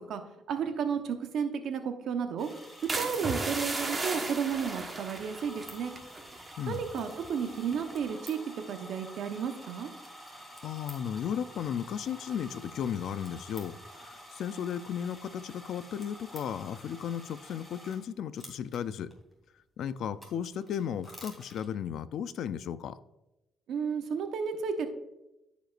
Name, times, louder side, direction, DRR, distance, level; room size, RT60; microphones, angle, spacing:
voice 1, 0.5-2.5 3.0-6.0 6.7-8.4 8.7-9.9 23.7-24.9, right 6 dB, 75° right, 6 dB, 1.0 m, -32 dB
sound 1, 2.4-18.0 18.4-19.1 19.8-21.6, equal, 5° left, 2.8 m, -49 dB
sound 2, 2.9-7.3 7.7-8.0, right 3 dB, 25° right, 1.3 m, -35 dB
voice 2, 10.3-19.1 19.8-23.0, left 8 dB, 75° left, 14 dB, 0.5 m, -35 dB
14.5 x 5.1 x 2.5 m, 0.94 s
cardioid pair, 90°, 0 cm